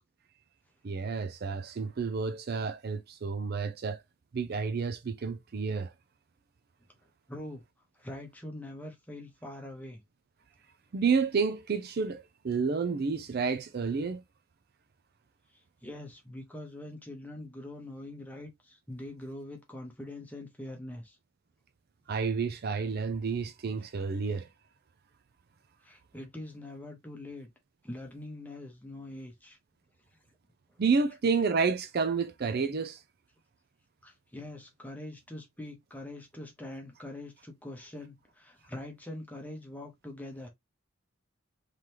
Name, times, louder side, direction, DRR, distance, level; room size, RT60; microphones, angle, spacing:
voice 1, 0.8-4.0 4.3-5.9 10.9-14.2 22.1-24.5 30.8-33.0, right 5 dB, 50° right, 0.4 m, -30 dB
voice 2, 7.3-7.6 8.0-10.0 15.8-21.2 25.8-27.5 27.8-29.6 34.0-40.5, left 1 dB, 10° left, 1.0 m, -43 dB
3.8 x 3.2 x 2.9 m
head